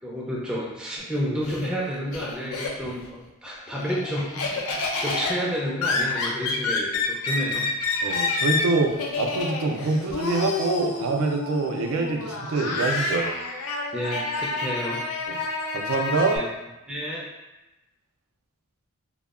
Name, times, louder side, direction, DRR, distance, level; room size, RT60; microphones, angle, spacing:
voice 1, 0.0-7.7 13.9-15.0 16.3-16.5 16.9-17.3, equal, 5° right, -5 dB, 0.4 m, -30 dB
Laughter, 1.0-3.1 3.5-16.4, left 3 dB, 85° left, 0.4 m, -29 dB
voice 2, 8.0-13.3 15.3-15.4 15.7-16.4, right 3 dB, 75° right, 3 dB, 0.4 m, -25 dB
2.2 x 2.0 x 3.5 m, 0.99 s
head